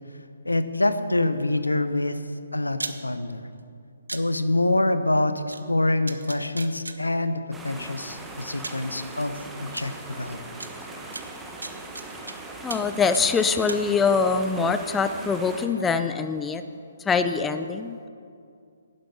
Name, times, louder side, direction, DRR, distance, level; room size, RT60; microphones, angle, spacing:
voice 1, 0.4-2.2 2.5-3.5 4.1-10.4, left 2 dB, 90° left, 11 dB, 0.8 m, -26 dB
sound 1, 2.8-3.0 4.1-4.2 5.5-5.6 6.1-7.0 8.0-8.1 8.6-8.8 9.8-9.9 10.6-10.7 11.1-12.3 12.7-12.9 13.1-13.8, right 2 dB, 85° right, 0.8 m, -35 dB
sound 2, 7.5-15.7, right 2 dB, 10° right, 1.1 m, -40 dB
voice 2, 12.6-16.6 17.1-18.1, left 5 dB, 10° left, 9 dB, 0.5 m, -24 dB
10.5 x 10.5 x 5.7 m, 2.3 s
figure-of-eight pair, 135°, 0 cm